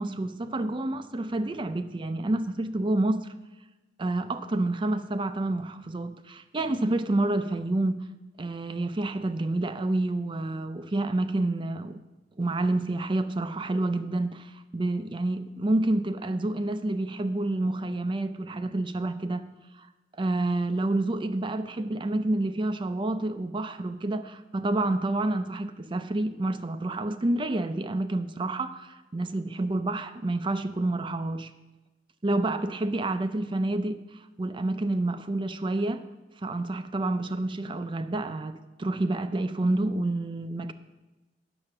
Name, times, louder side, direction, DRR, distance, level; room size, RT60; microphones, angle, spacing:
voice 1, 0.0-3.3 4.0-8.0 8.4-12.0 12.4-19.4 19.8-19.9 20.2-31.5 32.2-36.0 36.4-40.7, right 2 dB, 30° right, 10 dB, 0.5 m, -28 dB
8.9 x 7.0 x 6.5 m, 1.1 s
head